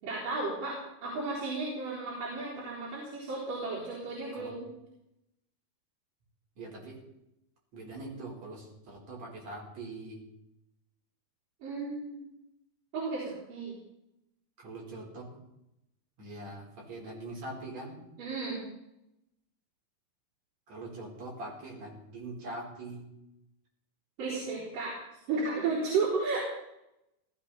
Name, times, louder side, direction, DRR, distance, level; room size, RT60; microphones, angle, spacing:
voice 1, 0.0-4.7 11.6-12.2 12.9-13.8 18.2-18.6 24.2-25.0 25.3-26.4, right 3 dB, 70° right, -8 dB, 5.9 m, -33 dB
voice 2, 6.6-7.0 7.7-10.3 14.6-15.4 16.2-18.0 20.7-23.1, right 2 dB, 50° right, -3 dB, 5.6 m, -42 dB
18.0 x 15.0 x 4.3 m, 0.85 s
omnidirectional pair, 4.0 m